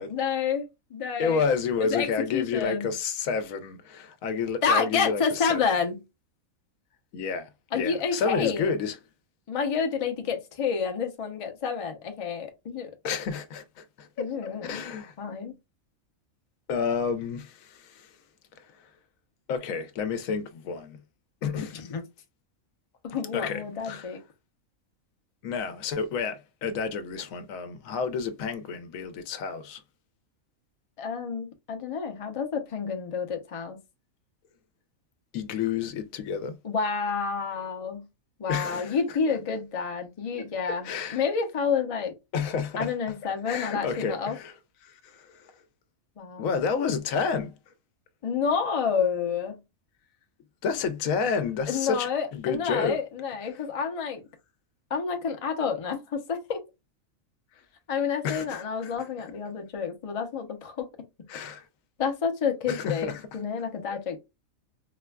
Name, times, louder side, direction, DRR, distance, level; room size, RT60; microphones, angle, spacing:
voice 1, 0.0-1.4 1.8-2.9 4.6-6.0 7.7-8.7 9.5-12.9 14.2-14.8 15.2-15.5 21.7-22.0 23.0-24.2 31.0-33.8 36.6-38.1 38.4-42.1 42.8-44.4 46.2-46.5 48.2-49.6 51.7-54.2 54.9-56.6 57.9-60.9 62.0-64.2, left 6 dB, 35° left, 0.5 m, -29 dB
voice 2, 1.2-5.6 7.1-7.5 7.7-9.0 13.0-14.3 14.6-15.1 16.7-18.1 19.5-21.0 21.4-21.8 23.3-24.1 25.4-29.8 35.3-36.6 38.5-39.0 40.6-41.2 42.3-42.9 43.5-44.5 44.8-45.4 46.4-47.5 50.6-53.0 58.2-59.0 61.3-61.6 62.7-63.2 63.9-64.0, left 5 dB, 75° left, 1.0 m, -30 dB
4.1 x 2.2 x 2.2 m
omnidirectional pair, 1.4 m